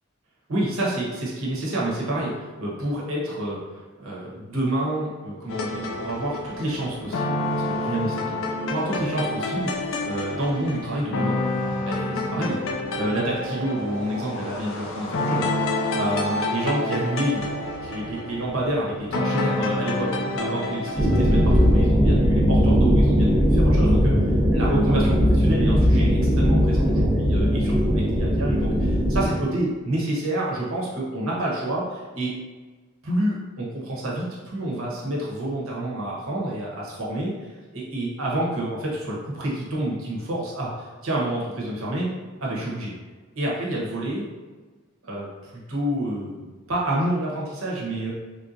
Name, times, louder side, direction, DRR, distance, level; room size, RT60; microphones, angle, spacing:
voice 1, 0.5-11.4 11.8-12.6 13.0-24.1 24.5-32.3 33.0-42.1 42.4-42.9 43.3-44.2 45.0-48.1, right 1 dB, 80° right, -4 dB, 1.0 m, -28 dB
sound 1, 5.5-21.8, left 2 dB, 65° left, 0.4 m, -28 dB
sound 2, 21.0-29.3, equal, 10° right, 0.7 m, -19 dB
3.6 x 2.7 x 2.5 m, 1.3 s
head